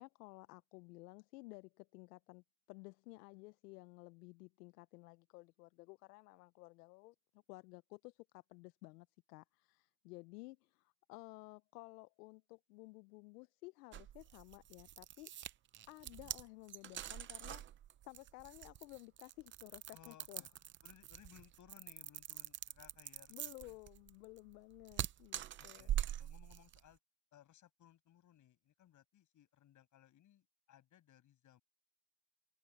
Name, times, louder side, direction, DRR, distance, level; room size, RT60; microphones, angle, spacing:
voice 1, 0.0-15.3 15.9-17.6 18.0-20.5 23.3-26.0, left 23 dB, 70° left, 0.9 m, -55 dB
sound 1, 13.9-26.9, right 12 dB, 25° right, 0.6 m, -44 dB
voice 2, 19.9-20.5 20.8-23.8 25.6-27.0 27.3-31.6, left 11 dB, 35° left, 7.9 m, -64 dB
open air
supercardioid pair, 115°, 49 cm